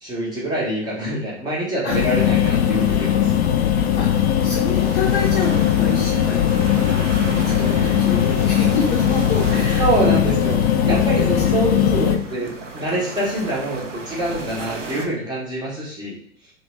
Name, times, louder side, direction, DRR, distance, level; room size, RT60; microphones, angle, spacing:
voice 1, 0.0-3.3 9.8-10.6 10.8-16.2, right 1 dB, 10° right, -6 dB, 0.9 m, -25 dB
sound 1, 1.9-12.2, left 10 dB, 60° left, 0.6 m, -19 dB
voice 2, 4.4-10.3 10.8-11.0 11.3-11.4 12.1-12.5 14.3-14.4, left 4 dB, 25° left, -4 dB, 0.8 m, -29 dB
sound 2, 4.5-15.1, right 3 dB, 85° right, 0.6 m, -35 dB
2.8 x 2.7 x 3.0 m, 0.66 s
figure-of-eight pair, 95°, 36 cm